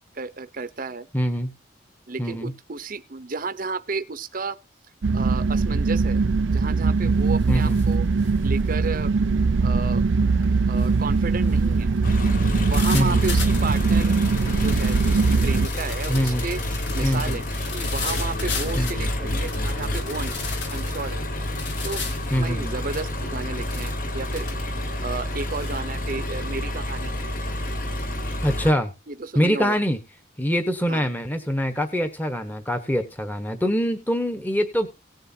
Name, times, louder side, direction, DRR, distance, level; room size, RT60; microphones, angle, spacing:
voice 1, 0.1-1.1 2.1-4.6 5.1-6.2 6.5-8.1 8.4-9.1 9.6-10.0 10.7-11.9 12.6-14.2 14.6-16.6 16.9-17.5 17.7-20.4 20.7-21.2 21.8-22.0 22.3-24.5 25.0-27.1 29.1-29.8 30.9-31.1, right 4 dB, 45° right, 11 dB, 0.8 m, -32 dB
voice 2, 1.1-1.5 2.2-2.5 7.5-7.8 12.9-13.2 16.1-16.5 17.0-17.4 18.8-18.9 22.3-22.8 28.4-28.9 29.3-30.0 30.4-34.9, equal, 10° left, 7 dB, 1.1 m, -24 dB
sound 1, 5.0-15.7, right 4 dB, 85° right, 0.5 m, -21 dB
sound 2, 6.2-6.5 6.9-25.8, left 5 dB, 75° left, 2.2 m, -38 dB
Engine, 12.0-28.7, left 1 dB, 45° left, 1.4 m, -29 dB
18.0 x 7.8 x 2.8 m, 0.26 s
head